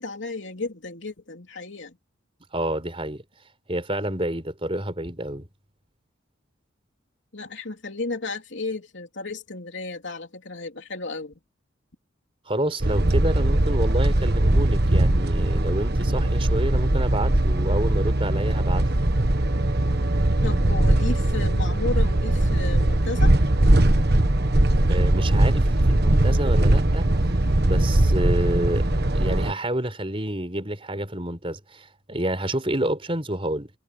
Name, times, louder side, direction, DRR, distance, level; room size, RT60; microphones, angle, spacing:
voice 1, 0.0-2.0 7.3-11.3 20.4-23.3, left 3 dB, 60° left, 3.3 m, -33 dB
voice 2, 2.5-3.2 3.7-5.5 12.5-18.9 24.9-27.1 27.6-28.9 29.1-33.7, right 1 dB, 25° right, 4.5 m, -28 dB
sound 1, 12.8-29.5, right 1 dB, 50° right, 1.5 m, -20 dB
head